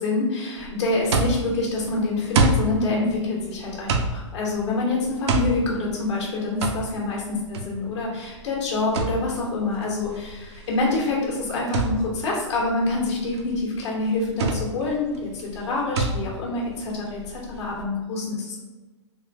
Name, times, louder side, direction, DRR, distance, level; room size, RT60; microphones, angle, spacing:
voice 1, 0.0-18.6, left 2 dB, 60° left, -3 dB, 1.0 m, -26 dB
sound 1, 0.6-17.8, right 3 dB, 60° right, 0.5 m, -29 dB
3.5 x 2.5 x 3.4 m, 1.2 s
hypercardioid pair, 120°, 16 cm